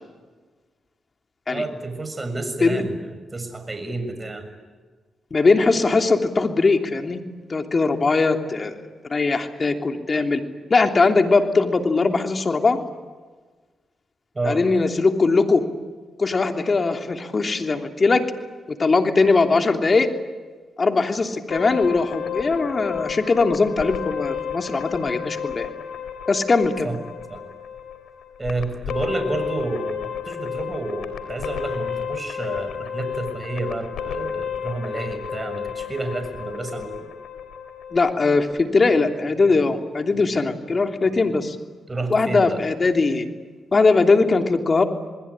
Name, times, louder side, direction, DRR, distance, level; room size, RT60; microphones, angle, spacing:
voice 1, 1.5-4.5 14.4-14.6 26.8-27.0 27.3-27.4 28.4-37.1 41.9-42.6, right 2 dB, 30° right, 7 dB, 6.9 m, -30 dB
voice 2, 5.3-7.2 7.5-8.8 9.1-10.4 10.7-12.8 14.4-15.7 16.2-18.2 18.7-20.1 20.8-25.7 26.3-26.9 37.9-41.6 42.1-43.3 43.7-44.8, left 3 dB, 40° left, 5 dB, 3.1 m, -20 dB
sound 1, 21.5-38.6, left 8 dB, 80° left, 3.6 m, -32 dB
28.0 x 21.0 x 9.9 m, 1.4 s
cardioid pair, 65°, 0 cm